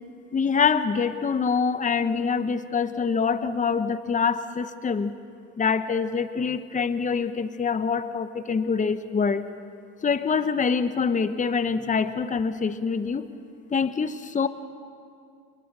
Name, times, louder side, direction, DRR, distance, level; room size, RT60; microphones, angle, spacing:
voice 1, 0.3-5.1 5.6-9.5 10.0-13.2 13.7-14.5, left 5 dB, 25° left, 12 dB, 1.1 m, -25 dB
27.0 x 21.0 x 6.9 m, 2.3 s
supercardioid pair, 80°, 29 cm